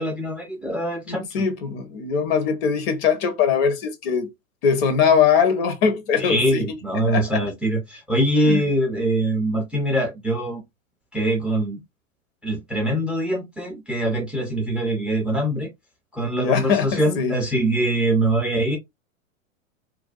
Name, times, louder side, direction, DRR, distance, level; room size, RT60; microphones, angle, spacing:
voice 1, 0.0-1.4 6.2-10.6 11.1-11.8 12.4-15.7 16.1-18.8, right 1 dB, 5° right, 0.4 m, -23 dB
voice 2, 1.1-4.3 4.6-6.7 7.1-7.4 8.4-8.6 16.3-17.3, left 6 dB, 45° left, 0.8 m, -21 dB
2.5 x 2.2 x 2.3 m
hypercardioid pair, 100°, 42 cm